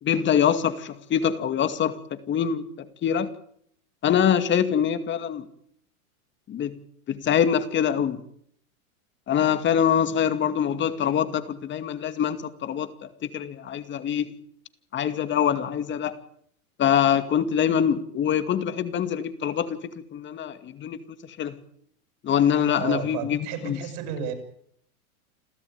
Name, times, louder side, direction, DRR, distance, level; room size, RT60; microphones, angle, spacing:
voice 1, 0.0-2.6 3.0-3.3 4.0-5.4 6.5-6.7 7.1-8.2 9.3-12.9 13.3-14.3 14.9-16.1 16.8-19.8 20.1-21.0 21.4-21.5 22.2-23.8, left 8 dB, 25° left, 10 dB, 2.3 m, -24 dB
voice 2, 22.8-24.3, right 9 dB, 50° right, 7 dB, 8.0 m, -32 dB
29.5 x 13.5 x 9.5 m, 0.68 s
hypercardioid pair, 120°, 43 cm